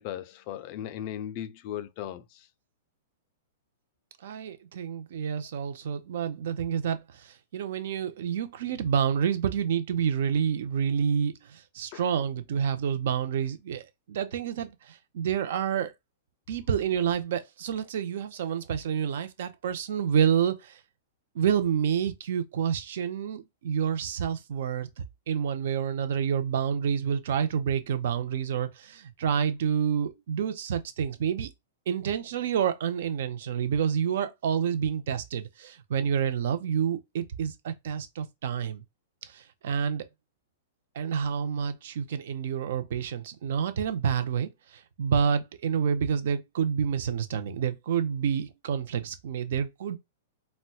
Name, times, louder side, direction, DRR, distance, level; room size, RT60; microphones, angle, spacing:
voice 1, 0.0-2.5 11.9-12.1, left 11 dB, 40° left, 0.3 m, -37 dB
voice 2, 4.2-15.9 16.5-20.8 21.3-31.5 31.9-38.8 39.3-40.1 41.0-50.0, right 8 dB, 60° right, 0.6 m, -28 dB
4.1 x 2.1 x 2.3 m
hypercardioid pair, 160°, 0 cm